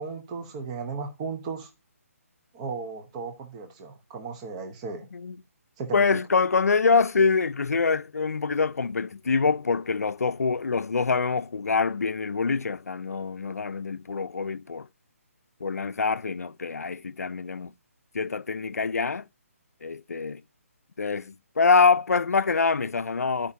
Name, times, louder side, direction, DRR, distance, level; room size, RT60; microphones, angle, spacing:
voice 1, 0.0-1.7 2.5-5.1 5.8-6.1, right 4 dB, 25° right, 0.9 m, -35 dB
voice 2, 5.9-14.9 15.6-17.7 18.1-19.3 19.8-20.4 21.0-23.5, left 4 dB, 85° left, 0.4 m, -25 dB
12.0 x 5.0 x 2.7 m
figure-of-eight pair, 150°, 8 cm